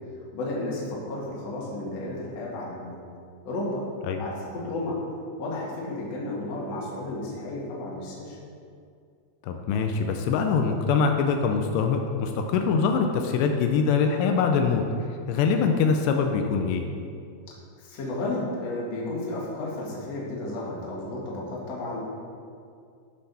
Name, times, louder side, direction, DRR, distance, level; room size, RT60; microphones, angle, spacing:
voice 1, 0.3-3.0 3.4-3.8 4.2-5.0 5.4-8.4 17.8-22.1, left 2 dB, 50° left, -5 dB, 2.2 m, -32 dB
voice 2, 9.5-14.8 15.3-16.8, left 5 dB, 85° left, 4 dB, 2.5 m, -23 dB
13.5 x 6.7 x 4.2 m, 2.4 s
omnidirectional pair, 5.5 m